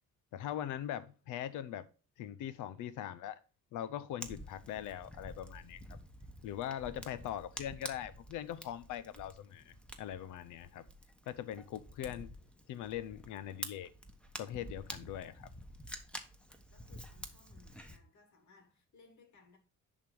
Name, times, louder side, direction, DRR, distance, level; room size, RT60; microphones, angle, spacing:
voice 1, 0.3-1.9 2.2-3.4 3.7-6.0 6.4-10.9 11.3-12.3 12.7-13.9 14.4-15.5, left 11 dB, 85° left, 0.7 m, -41 dB
Fire, 4.2-18.0, equal, 5° left, 1.1 m, -49 dB
voice 2, 16.7-19.6, left 4 dB, 65° left, 2.6 m, -64 dB
10.5 x 3.6 x 4.7 m
cardioid pair, 90°, 30 cm